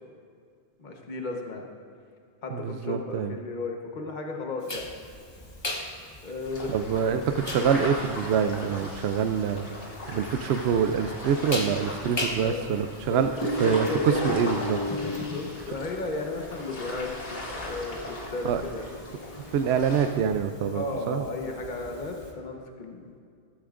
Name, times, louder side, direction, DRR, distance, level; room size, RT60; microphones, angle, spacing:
voice 1, 0.8-1.7 2.4-4.9 6.2-6.9 12.4-12.7 13.1-13.2 13.6-14.2 15.0-17.1 17.6-18.8 20.7-23.2, left 3 dB, 40° left, 2 dB, 1.2 m, -34 dB
voice 2, 2.5-3.3 6.7-9.7 10.1-13.3 13.6-14.8 18.4-18.6 19.5-21.3, right 7 dB, 70° right, 8 dB, 0.8 m, -25 dB
sound 1, 4.7-22.3, left 1 dB, 25° left, 1.0 m, -37 dB
sound 2, 6.4-20.1, left 1 dB, 85° left, 2.1 m, -38 dB
15.0 x 13.5 x 2.5 m, 2.3 s
omnidirectional pair, 1.2 m